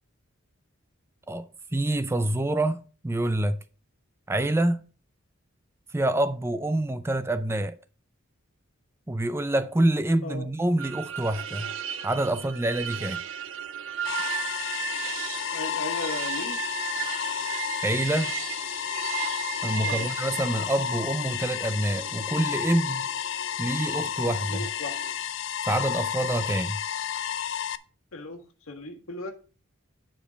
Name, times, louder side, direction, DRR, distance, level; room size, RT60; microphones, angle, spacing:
voice 1, 1.7-3.6 4.3-4.8 5.9-7.8 9.1-11.7 12.0-13.2 17.8-18.3 19.6-23.1 23.6-24.7 25.6-26.8, right 1 dB, 10° right, 0.4 m, -26 dB
sound 1, 10.8-25.1, right 10 dB, 70° right, 0.7 m, -36 dB
sound 2, 14.0-27.8, left 9 dB, 60° left, 0.4 m, -31 dB
voice 2, 15.5-16.6 19.8-20.1 24.5-25.0 28.1-28.4 28.7-29.3, left 2 dB, 90° left, 1.7 m, -36 dB
9.1 x 5.0 x 5.1 m
head